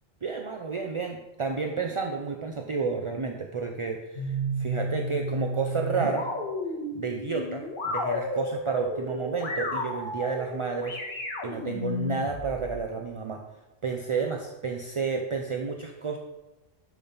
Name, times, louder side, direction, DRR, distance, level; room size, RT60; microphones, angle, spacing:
voice 1, 0.2-6.3 6.9-13.4 13.8-16.2, right 5 dB, 40° right, 3 dB, 0.5 m, -31 dB
sound 1, 4.1-12.7, left 1 dB, 45° left, 1.6 m, -32 dB
10.5 x 5.9 x 4.0 m, 1.0 s
omnidirectional pair, 1.2 m